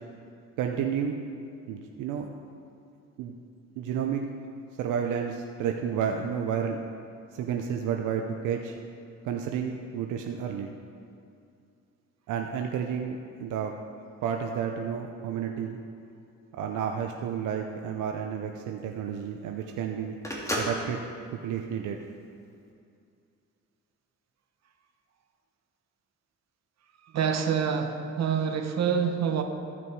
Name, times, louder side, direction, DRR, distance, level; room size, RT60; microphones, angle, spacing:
voice 1, 0.6-1.2 1.7-2.3 3.2-3.3 3.8-4.2 4.8-6.8 7.3-8.8 9.2-10.7 12.3-13.7 14.2-15.8 16.6-20.1 20.6-21.1 21.4-22.0, right 7 dB, 85° right, 3 dB, 0.7 m, -31 dB
Telephone, 17.3-22.6, equal, 10° left, 2.1 m, -36 dB
voice 2, 27.1-29.4, right 7 dB, 60° right, 5 dB, 1.1 m, -26 dB
15.0 x 6.0 x 4.7 m, 2.5 s
cardioid pair, 90°, 30 cm